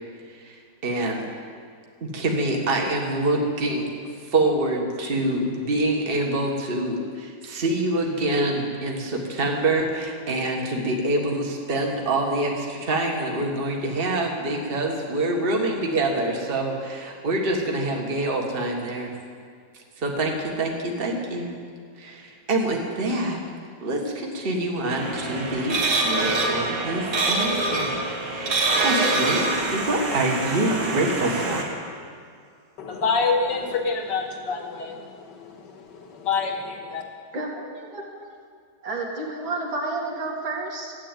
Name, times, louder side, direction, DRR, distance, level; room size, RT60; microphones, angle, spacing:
voice 1, 0.4-1.3 2.0-3.9 4.3-19.1 20.0-21.5 22.0-23.4 23.8-28.0 28.3-29.5 29.7-31.8, right 2 dB, 30° right, 1 dB, 1.6 m, -26 dB
sound 1, 24.9-31.6, right 2 dB, 65° right, 2.4 m, -25 dB
voice 2, 32.8-37.0, left 4 dB, 65° left, 3 dB, 2.0 m, -27 dB
voice 3, 37.3-38.3 38.8-40.9, right 2 dB, 80° right, -2 dB, 2.9 m, -31 dB
13.0 x 8.5 x 9.0 m, 2.2 s
omnidirectional pair, 2.1 m